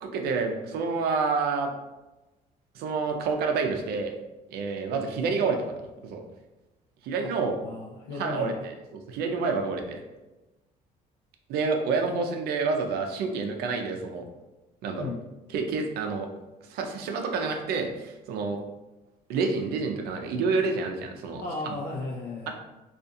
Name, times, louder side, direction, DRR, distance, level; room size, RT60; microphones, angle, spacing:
voice 1, 0.0-1.7 2.7-4.1 4.5-5.7 6.0-6.2 7.0-7.6 8.1-8.7 9.1-10.0 11.5-14.2 14.8-15.1 15.5-16.3 16.7-18.6 19.3-21.7 22.5-22.6, right 4 dB, 75° right, 4 dB, 0.5 m, -28 dB
voice 2, 7.6-8.6 15.0-15.2 21.4-22.5, left 3 dB, 80° left, 0 dB, 0.4 m, -35 dB
2.4 x 2.4 x 2.6 m, 1.0 s
cardioid pair, 100°, 16 cm